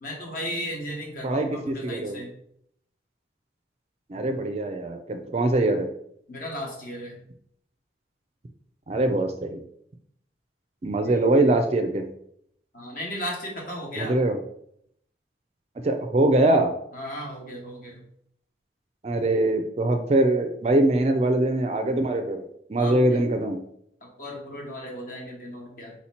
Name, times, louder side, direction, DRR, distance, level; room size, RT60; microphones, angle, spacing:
voice 1, 0.0-2.3 6.3-7.2 11.0-11.3 12.7-14.2 16.9-18.1 22.8-23.2 24.0-25.9, equal, 50° left, -1 dB, 1.3 m, -35 dB
voice 2, 1.2-2.2 4.1-5.9 8.9-9.6 10.8-12.1 14.0-14.4 15.8-16.7 19.0-22.4 22.7-23.6, right 2 dB, 35° right, 6 dB, 0.4 m, -23 dB
4.2 x 2.9 x 4.2 m, 0.71 s
head